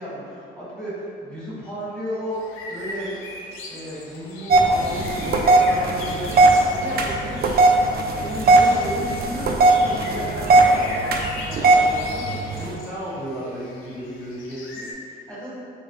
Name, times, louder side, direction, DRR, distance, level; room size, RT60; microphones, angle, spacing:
voice 1, 0.0-3.2 3.7-7.5 8.2-15.5, equal, 5° left, -10 dB, 1.4 m, -33 dB
sound 1, 2.3-14.9, left 2 dB, 90° left, 0.5 m, -40 dB
sound 2, 4.5-12.7, right 2 dB, 50° right, 0.4 m, -18 dB
4.1 x 2.0 x 3.0 m, 2.5 s
cardioid pair, 90°, 20 cm